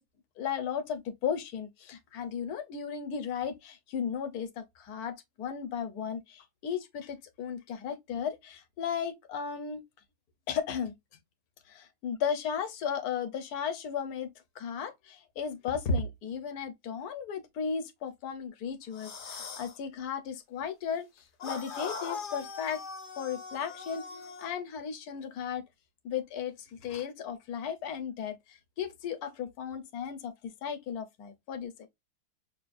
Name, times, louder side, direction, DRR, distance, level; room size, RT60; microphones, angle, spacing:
voice 1, 0.4-9.8 10.5-10.9 11.7-14.3 14.5-21.1 21.4-22.8 23.2-25.6 26.0-31.9, left 7 dB, 70° left, 1.3 m, -35 dB
sound 1, 18.9-19.7 21.4-24.6, left 5 dB, 50° left, 0.6 m, -40 dB
5.9 x 2.3 x 2.5 m
omnidirectional pair, 1.7 m